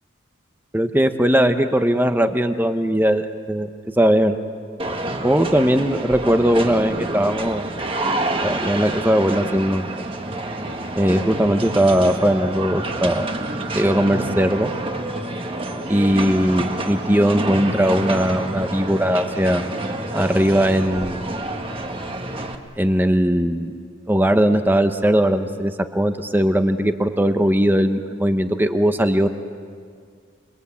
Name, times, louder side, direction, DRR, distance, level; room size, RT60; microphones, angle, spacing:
voice 1, 0.7-3.7 4.0-4.4 5.2-7.7 8.4-9.9 11.0-13.3 13.7-14.7 15.9-19.6 20.1-21.3 22.8-23.7 24.1-29.3, equal, 10° right, 8 dB, 0.9 m, -19 dB
sound 1, 4.8-22.6, right 2 dB, 25° right, 1.5 m, -28 dB
28.0 x 22.5 x 8.5 m, 2.1 s
head